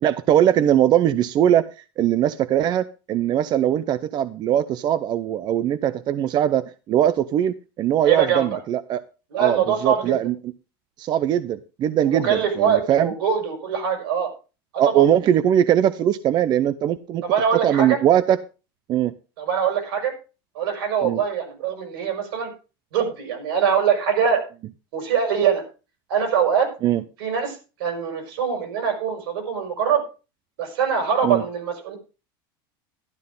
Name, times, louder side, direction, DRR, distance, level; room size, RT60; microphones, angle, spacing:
voice 1, 0.0-1.7 2.0-9.0 9.4-10.3 11.0-13.1 14.8-17.2 17.5-18.4 18.9-19.1 21.0-21.2 26.8-27.0 31.2-31.4, right 11 dB, 35° right, 14 dB, 0.5 m, -20 dB
voice 2, 8.0-8.5 9.3-10.2 12.1-14.3 14.7-15.0 17.2-18.0 19.4-20.1 20.6-22.5 22.9-24.4 24.9-25.6 26.1-26.7 27.2-30.0 30.6-32.0, right 7 dB, 85° right, 4 dB, 5.2 m, -23 dB
12.0 x 11.0 x 3.7 m, 0.32 s
supercardioid pair, 135°, 12 cm